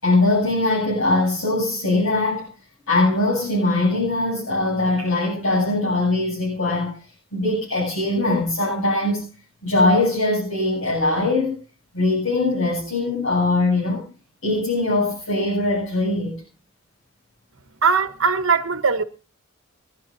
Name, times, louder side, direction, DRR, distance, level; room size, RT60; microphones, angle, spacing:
voice 1, 0.0-2.5 2.9-7.0 7.3-9.3 9.6-11.6 11.9-14.0 14.4-16.3, left 2 dB, 70° left, 8.0 m, -21 dB
voice 2, 17.8-19.0, right 5 dB, 70° right, 1.0 m, -20 dB
28.5 x 10.5 x 2.7 m
head